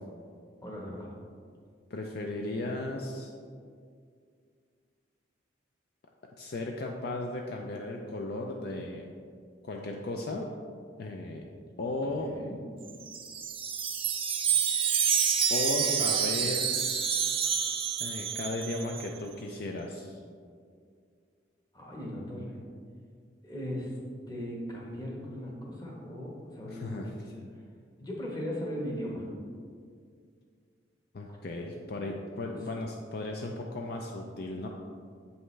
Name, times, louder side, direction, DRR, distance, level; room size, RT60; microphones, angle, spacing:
voice 1, 0.6-1.1 12.2-12.6 21.7-22.6 23.4-24.0 24.3-27.1 28.0-29.2 31.3-31.4 32.5-32.6, equal, 20° left, -2 dB, 1.1 m, -38 dB
voice 2, 1.9-3.3 6.4-9.1 9.6-10.5 11.0-11.4 11.8-12.3 15.5-16.8 18.0-20.2 26.6-27.1 31.1-34.7, left 2 dB, 55° left, 1 dB, 0.4 m, -35 dB
Wind chime, 12.9-19.1, right 7 dB, 30° right, 0.4 m, -28 dB
7.4 x 5.6 x 3.2 m, 2.2 s
head